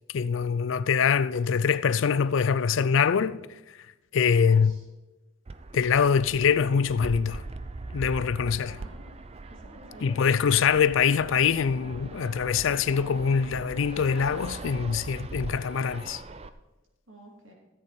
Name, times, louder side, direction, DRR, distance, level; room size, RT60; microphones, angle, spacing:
voice 1, 0.1-3.4 4.1-4.8 5.7-7.4 7.9-8.8 10.0-16.2, left 6 dB, 60° left, 0.4 m, -24 dB
voice 2, 4.4-4.8 8.4-9.1 9.5-10.3 17.1-17.5, equal, 60° right, 2.8 m, -50 dB
Fixed-wing aircraft airplane, 5.5-16.5, right 2 dB, 30° right, 0.5 m, -41 dB
14.0 x 8.3 x 4.3 m
head